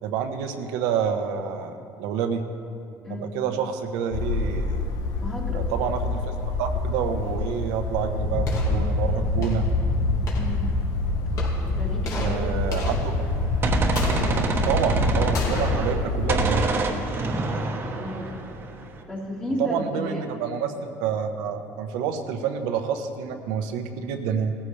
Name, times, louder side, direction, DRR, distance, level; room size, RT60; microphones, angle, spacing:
voice 1, 0.0-2.4 3.1-4.9 5.5-9.7 12.1-12.9 14.1-16.7 19.6-24.6, right 7 dB, 90° right, 6 dB, 1.2 m, -28 dB
sound 1, 4.1-16.6, left 3 dB, 75° left, 0.9 m, -28 dB
voice 2, 5.2-5.7 10.3-10.7 11.7-12.4 17.8-18.3 19.1-20.2, left 1 dB, 15° left, -4 dB, 2.2 m, -33 dB
sound 2, 8.2-17.3, left 1 dB, 60° left, 2.8 m, -27 dB
Gunshot gunfire, 13.2-16.0 16.3-19.0, right 3 dB, 35° right, 1.2 m, -28 dB
19.0 x 14.5 x 3.4 m, 2.6 s
cardioid pair, 140°, 7 cm